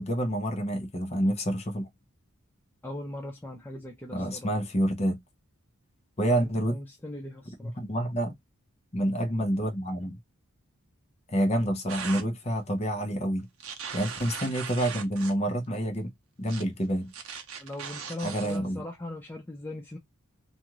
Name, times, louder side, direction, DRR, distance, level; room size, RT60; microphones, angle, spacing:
voice 1, 0.0-1.9 4.1-5.2 6.2-6.8 7.6-8.4 8.9-10.2 11.3-13.5 13.9-16.1 16.4-17.1 18.2-18.8, equal, 30° left, 0.8 m, -28 dB
voice 2, 2.8-4.5 6.2-7.7 17.6-20.0, left 1 dB, 10° left, 0.4 m, -39 dB
sound 1, 11.9-12.3 13.6-15.4 16.5-16.6 17.1-18.6, right 6 dB, 65° right, 0.7 m, -39 dB
2.5 x 2.4 x 2.9 m
head